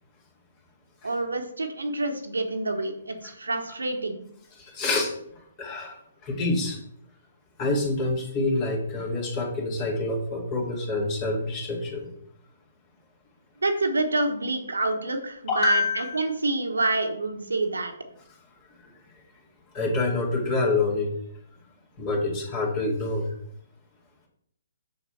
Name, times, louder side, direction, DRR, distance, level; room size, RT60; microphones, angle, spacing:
voice 1, 1.0-4.2 13.6-17.9, right 2 dB, 80° right, 5 dB, 1.3 m, -27 dB
voice 2, 4.6-5.1 5.6-6.8 7.6-12.1 15.5-16.3 19.7-21.1 22.0-23.3, left 2 dB, 30° left, -1 dB, 2.4 m, -27 dB
6.7 x 6.6 x 4.3 m, 0.70 s
figure-of-eight pair, 130°, 0 cm